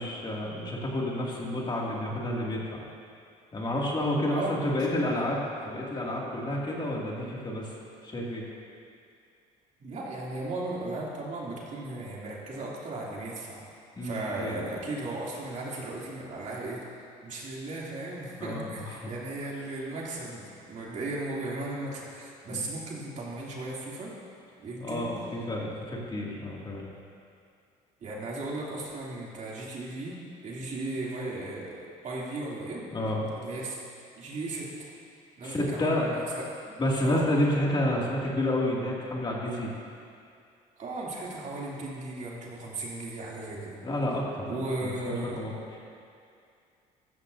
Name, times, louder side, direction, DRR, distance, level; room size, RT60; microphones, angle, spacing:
voice 1, 0.0-2.8 3.5-7.7 8.0-8.4 14.0-14.6 18.4-19.1 22.5-22.6 24.8-26.9 32.9-33.3 35.4-36.1 36.8-39.7 43.8-45.5, left 1 dB, 30° left, -3 dB, 2.5 m, -30 dB
voice 2, 4.3-4.7 5.0-5.3 9.8-13.6 14.0-16.8 17.2-24.1 24.6-25.1 28.0-32.8 33.4-33.8 34.2-34.7 35.4-36.4 37.0-37.3 40.8-43.8 44.5-45.4, right 2 dB, 50° right, -5 dB, 3.0 m, -36 dB
14.5 x 13.0 x 2.8 m, 2.4 s
supercardioid pair, 85°, 16 cm